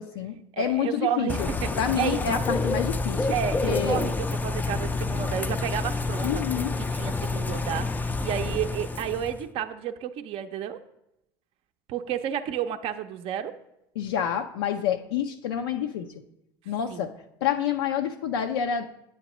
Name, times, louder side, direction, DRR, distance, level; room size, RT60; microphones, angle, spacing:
voice 1, 0.0-3.3 3.6-4.1 6.2-6.7 14.0-16.1 16.7-17.1 17.4-18.9, left 8 dB, 80° left, 4 dB, 0.4 m, -28 dB
voice 2, 0.5-2.4 3.3-6.4 6.8-10.8 11.9-13.6 16.9-17.1, right 9 dB, 50° right, 7 dB, 0.5 m, -31 dB
Bird / Rain, 1.3-9.4, left 3 dB, 15° left, 0.3 m, -28 dB
8.8 x 7.1 x 3.0 m, 0.83 s
hypercardioid pair, 80°, 12 cm